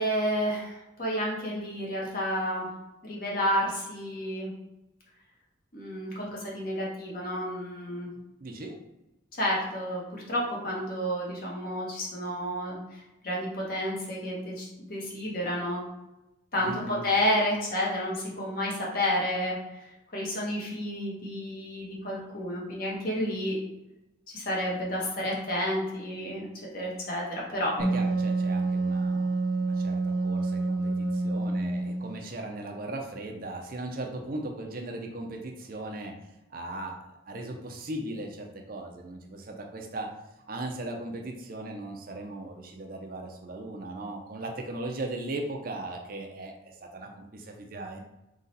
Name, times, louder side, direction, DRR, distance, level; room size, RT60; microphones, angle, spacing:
voice 1, 0.0-2.7 3.0-4.5 5.7-8.1 9.4-15.8 16.5-23.6 24.3-26.5 26.7-27.8, equal, 50° left, -3 dB, 1.3 m, -30 dB
voice 2, 8.4-8.8 16.6-17.0 27.8-36.1 36.5-40.1 40.5-48.0, right 2 dB, 50° right, 3 dB, 0.6 m, -38 dB
Wind instrument woodwind instrument, 27.8-32.2, right 2 dB, 65° left, 1.2 m, -28 dB
3.9 x 3.1 x 4.1 m, 0.96 s
head